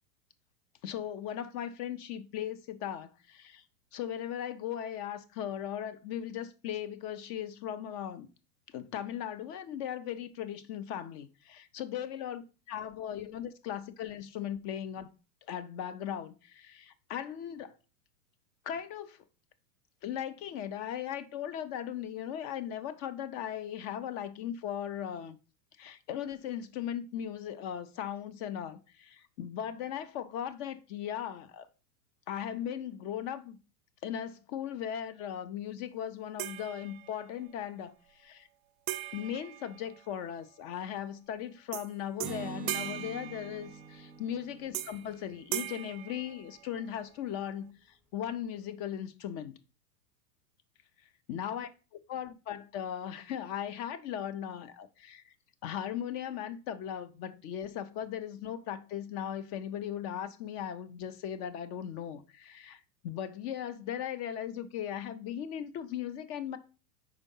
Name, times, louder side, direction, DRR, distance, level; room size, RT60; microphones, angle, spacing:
voice 1, 0.8-3.6 3.9-8.3 8.7-12.4 12.7-15.1 15.5-17.8 18.6-19.2 20.0-25.4 25.8-31.7 32.3-33.6 34.0-38.5 39.1-47.7 48.1-49.5 51.3-51.7 52.1-55.3 55.6-66.6, left 9 dB, 35° left, 0.7 m, -38 dB
sound 1, 36.4-37.4 38.9-40.4 41.7-41.9 42.2-44.0 44.7-45.1 45.5-46.9, right 15 dB, 40° right, 0.5 m, -40 dB
Acoustic guitar, 42.2-45.9, right 4 dB, ahead, 1.0 m, -45 dB
5.1 x 4.6 x 5.4 m
hypercardioid pair, 125°, 50 cm